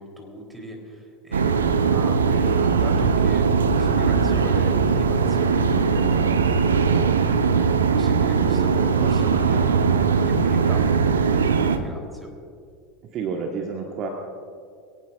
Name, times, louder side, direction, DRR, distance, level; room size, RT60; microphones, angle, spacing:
voice 1, 0.0-12.3, right 1 dB, 5° right, 0 dB, 3.6 m, -38 dB
sound 1, 1.3-11.8, right 5 dB, 75° right, 0.8 m, -20 dB
voice 2, 13.1-14.1, right 5 dB, 40° right, 2 dB, 1.5 m, -29 dB
22.5 x 17.5 x 2.6 m, 2.2 s
figure-of-eight pair, 75°, 0 cm